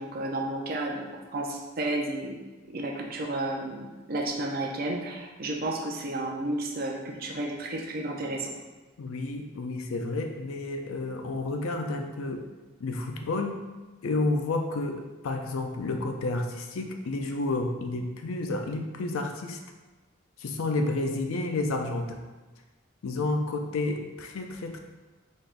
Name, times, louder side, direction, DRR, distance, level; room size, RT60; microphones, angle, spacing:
voice 1, 0.0-2.4 2.7-8.5, right 2 dB, 45° right, 0 dB, 0.5 m, -32 dB
voice 2, 9.0-12.5 12.8-13.6 14.0-19.6 20.4-22.2 23.0-24.8, left 2 dB, 85° left, 4 dB, 0.4 m, -30 dB
4.1 x 3.3 x 2.5 m, 1.2 s
head